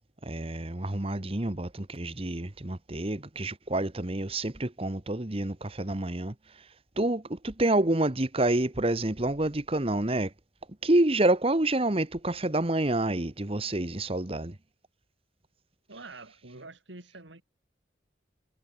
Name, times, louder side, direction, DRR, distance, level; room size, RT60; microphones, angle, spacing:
voice 1, 0.2-6.3 7.0-10.3 10.8-14.6, right 1 dB, 30° right, 1.2 m, -28 dB
voice 2, 15.9-17.4, right 3 dB, 85° right, 2.9 m, -46 dB
head